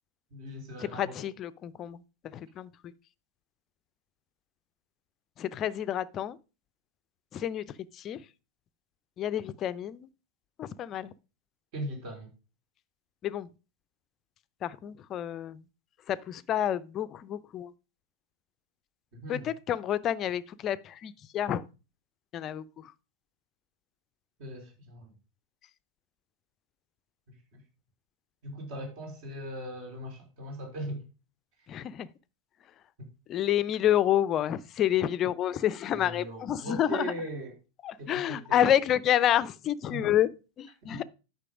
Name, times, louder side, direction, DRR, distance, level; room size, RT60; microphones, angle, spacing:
voice 1, 0.3-1.3 11.7-12.3 19.1-19.5 24.4-25.1 27.3-27.6 28.4-31.0 31.6-31.7 33.0-33.1 35.9-37.6 38.0-38.8 39.9-40.2 40.8-41.0, right 1 dB, 45° right, 3.8 m, -39 dB
voice 2, 0.9-2.0 2.3-2.7 5.4-6.4 7.3-7.6 8.0-8.2 9.2-10.0 10.6-11.1 13.2-13.5 14.6-15.6 16.1-17.7 19.3-21.6 22.3-22.6 31.7-32.1 33.3-37.0 37.8-40.3 40.6-41.0, left 11 dB, 30° left, 0.6 m, -28 dB
9.9 x 5.8 x 5.0 m
figure-of-eight pair, 90°, 0 cm